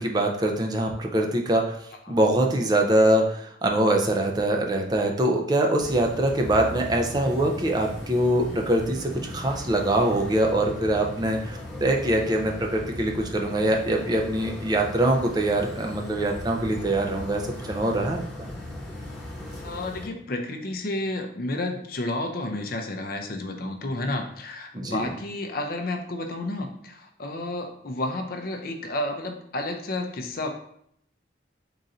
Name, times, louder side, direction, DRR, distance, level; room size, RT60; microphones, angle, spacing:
voice 1, 0.0-1.8 2.1-17.4 17.7-18.2 24.7-25.1, right 1 dB, 20° right, 1 dB, 0.5 m, -23 dB
sound 1, 5.8-20.1, left 1 dB, ahead, 1.1 m, -38 dB
voice 2, 19.6-30.5, left 2 dB, 50° left, 4 dB, 0.5 m, -31 dB
3.9 x 2.6 x 4.2 m, 0.69 s
head